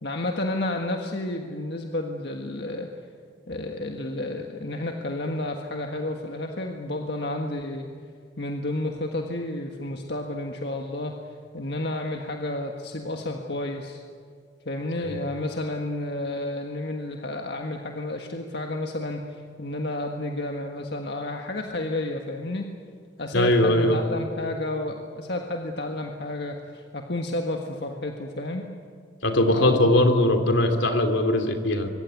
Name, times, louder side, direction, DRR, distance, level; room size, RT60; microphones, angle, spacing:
voice 1, 0.0-2.9 3.5-7.9 8.4-11.2 11.5-14.0 14.6-22.7 23.2-28.7 29.4-29.9, left 2 dB, 60° left, 2 dB, 1.6 m, -31 dB
voice 2, 23.3-24.0 29.2-31.9, left 1 dB, 80° left, 6 dB, 3.0 m, -20 dB
25.0 x 23.5 x 9.5 m, 2.2 s
head